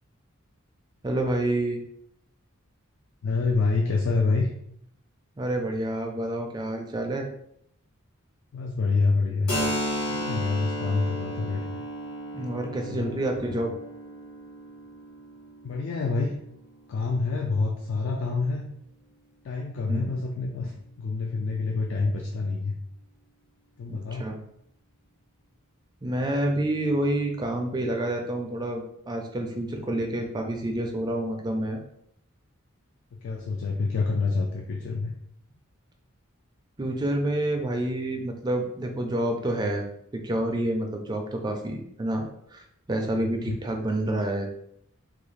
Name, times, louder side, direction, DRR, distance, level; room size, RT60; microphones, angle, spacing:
voice 1, 1.0-1.8 5.4-7.3 12.3-13.7 19.9-20.1 23.9-24.4 26.0-31.8 36.8-39.8 40.1-42.2 42.5-44.5, right 1 dB, 20° right, 3 dB, 0.3 m, -28 dB
voice 2, 3.2-4.5 8.5-9.6 10.1-11.8 12.9-13.1 15.6-16.4 16.9-18.7 19.4-22.8 23.8-24.3 33.2-35.1 43.2-43.6, left 3 dB, 60° left, 2 dB, 0.3 m, -27 dB
Keyboard (musical), 9.5-16.8, equal, 80° left, 1.0 m, -34 dB
2.4 x 2.3 x 3.1 m, 0.71 s
head